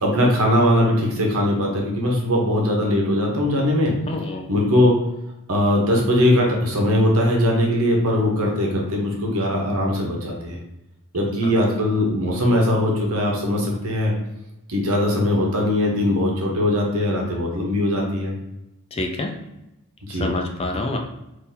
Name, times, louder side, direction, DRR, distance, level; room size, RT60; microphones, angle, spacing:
voice 1, 0.0-3.9 4.5-5.0 5.5-10.6 11.1-14.1 14.7-18.3 20.1-20.3, left 1 dB, 70° right, -1 dB, 1.0 m, -20 dB
voice 2, 4.1-4.5 11.4-11.5 18.9-19.3 20.1-21.0, left 2 dB, 25° left, 3 dB, 0.4 m, -27 dB
3.9 x 2.7 x 2.8 m, 0.92 s
head